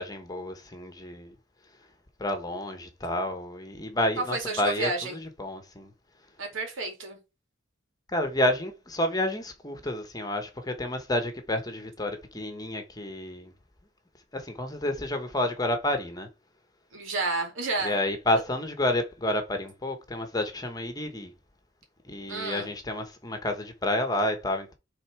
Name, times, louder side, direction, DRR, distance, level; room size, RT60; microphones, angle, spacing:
voice 1, 0.0-1.3 2.2-5.9 8.1-13.5 14.3-16.3 17.8-21.3 22.0-24.8, left 1 dB, 20° left, 1.1 m, -30 dB
voice 2, 4.2-5.2 6.4-7.2 16.9-18.0 22.3-22.7, right 3 dB, 85° right, 2.5 m, -30 dB
6.7 x 3.8 x 4.6 m
head